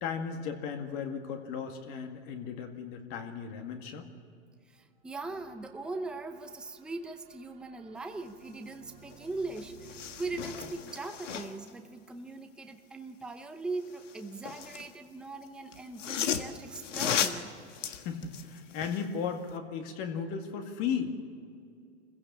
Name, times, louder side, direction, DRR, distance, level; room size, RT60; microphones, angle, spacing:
voice 1, 0.0-4.1 18.0-21.2, left 6 dB, 35° left, 5 dB, 2.1 m, -35 dB
voice 2, 4.7-17.5, right 3 dB, ahead, 6 dB, 0.6 m, -40 dB
sound 1, 5.2-10.7, right 6 dB, 30° right, 2.0 m, -56 dB
sound 2, 9.1-9.2 9.5-11.7 13.8-14.9 15.7-19.1 19.5-19.6, left 8 dB, 80° left, 1.7 m, -35 dB
25.5 x 16.0 x 7.1 m, 2.4 s
hypercardioid pair, 140°, 36 cm